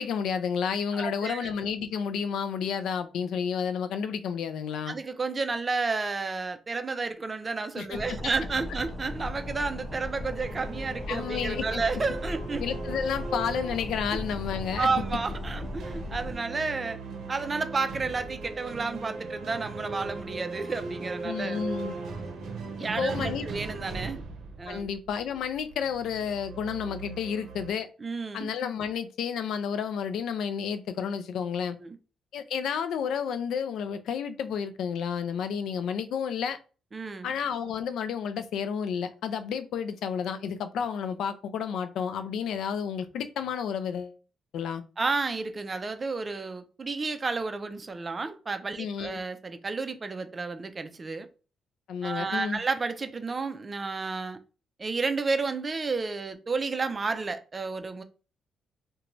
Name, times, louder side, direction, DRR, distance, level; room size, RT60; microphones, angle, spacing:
voice 1, 0.0-5.0 7.7-8.2 11.1-11.8 12.6-14.9 21.2-22.0 23.0-23.5 24.7-27.9 28.3-31.8 32.3-36.6 37.2-44.2 44.5-44.8 48.8-49.2 51.9-52.6, left 7 dB, 75° left, 0.3 m, -31 dB
voice 2, 0.9-1.5 4.9-12.6 14.7-17.0 17.3-21.6 22.8-24.2 24.6-24.9 28.0-28.5 31.8-32.0 36.9-37.3 45.0-51.3 52.0-54.4 54.8-58.0, right 4 dB, 30° right, 0.4 m, -31 dB
sound 1, 7.9-16.4, left 1 dB, 40° left, 1.0 m, -37 dB
sound 2, 10.4-27.7, right 3 dB, 75° right, 0.6 m, -39 dB
2.5 x 2.2 x 3.0 m
cardioid pair, 90°, 0 cm